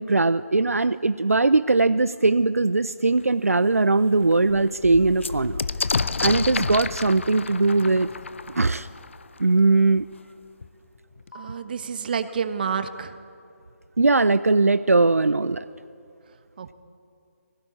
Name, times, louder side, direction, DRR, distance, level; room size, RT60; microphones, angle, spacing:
voice 1, 0.0-5.6 6.2-8.1 8.5-8.9 9.4-10.1 14.0-15.7, right 3 dB, 75° right, 14 dB, 0.5 m, -20 dB
sound 1, 3.2-3.3 3.7-3.8 4.1-9.6 10.6-10.7 11.0-11.6, left 4 dB, 55° left, 0.7 m, -30 dB
voice 2, 11.3-13.2 16.6-16.7, right 6 dB, 40° right, 10 dB, 1.3 m, -29 dB
21.0 x 17.5 x 9.8 m, 2.5 s
figure-of-eight pair, 145°, 8 cm